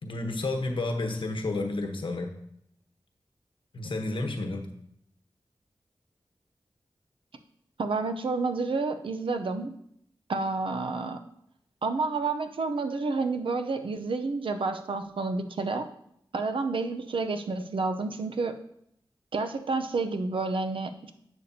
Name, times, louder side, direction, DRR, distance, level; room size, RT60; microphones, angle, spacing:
voice 1, 0.0-2.3 3.7-4.7, left 2 dB, 75° left, 5 dB, 1.1 m, -31 dB
voice 2, 7.8-9.7 10.3-11.2 11.8-15.9 16.3-18.6 19.3-21.1, right 3 dB, 85° right, 7 dB, 0.7 m, -29 dB
11.0 x 6.9 x 2.8 m, 0.72 s
wide cardioid pair, 80°, 9 cm